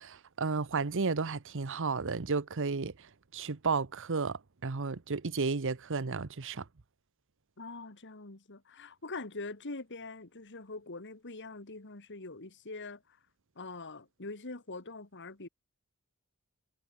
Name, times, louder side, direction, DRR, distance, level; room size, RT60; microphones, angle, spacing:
voice 1, 0.0-2.9 3.3-6.6, right 4 dB, 60° right, 0.9 m, -33 dB
voice 2, 7.6-13.2 13.6-15.5, left 3 dB, 55° left, 2.2 m, -43 dB
head